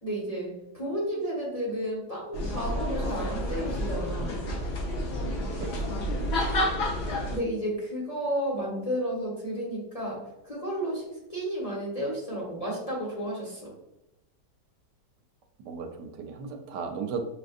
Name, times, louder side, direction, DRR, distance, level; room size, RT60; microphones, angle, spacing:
voice 1, 0.0-4.4 7.3-13.6, equal, 25° left, -6 dB, 1.2 m, -32 dB
sound 1, 2.3-7.4, left 1 dB, 65° left, 0.6 m, -30 dB
voice 2, 5.6-6.7 15.6-17.2, right 5 dB, 80° right, 5 dB, 1.2 m, -37 dB
6.2 x 2.5 x 2.4 m, 0.91 s
omnidirectional pair, 1.8 m